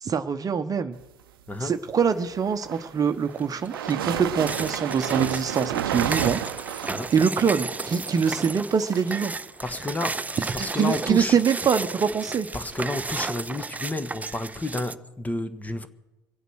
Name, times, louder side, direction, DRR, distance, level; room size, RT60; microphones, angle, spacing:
voice 1, 0.0-1.0 1.6-6.4 7.1-9.3 10.6-12.5, right 6 dB, 30° right, 1.0 m, -24 dB
voice 2, 1.5-1.8 6.8-7.1 9.6-11.4 12.5-15.9, left 2 dB, 15° left, 1.3 m, -31 dB
sound 1, 2.5-2.9 3.3-14.9, right 3 dB, 15° right, 0.5 m, -34 dB
sound 2, 2.5-7.6, right 11 dB, 85° right, 0.7 m, -30 dB
24.5 x 8.1 x 6.3 m
hypercardioid pair, 75°, 12 cm